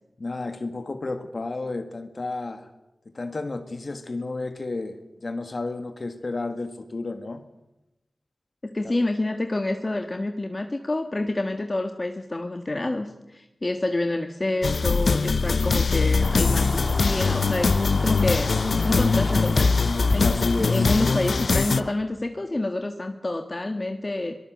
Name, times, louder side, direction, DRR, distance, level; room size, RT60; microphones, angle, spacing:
voice 1, 0.2-2.7 3.1-7.4 8.8-8.9 20.2-21.0, left 3 dB, 60° left, 7 dB, 1.9 m, -32 dB
voice 2, 8.6-18.6 18.8-19.7 20.1-24.4, left 2 dB, 40° left, 6 dB, 1.5 m, -28 dB
sound 1, 14.6-21.8, left 4 dB, 80° left, 0.8 m, -22 dB
sound 2, 16.2-21.9, left 1 dB, 20° left, 2.8 m, -32 dB
24.5 x 19.0 x 7.8 m, 0.93 s
wide cardioid pair, 55°, 0 cm